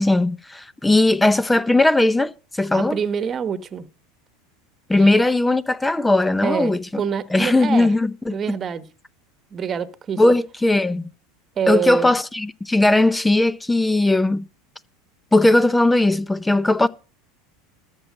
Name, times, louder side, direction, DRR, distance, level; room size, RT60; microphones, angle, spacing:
voice 1, 0.0-3.0 4.9-7.0 7.3-8.4 10.2-11.1 11.7-14.5 15.3-16.9, left 2 dB, 10° left, 0.6 m, -18 dB
voice 2, 2.7-3.9 5.0-5.1 6.4-7.9 8.3-8.9 9.5-10.2 11.6-12.1, right 7 dB, 30° right, 1.2 m, -26 dB
13.5 x 6.4 x 7.4 m
supercardioid pair, 110°, 0 cm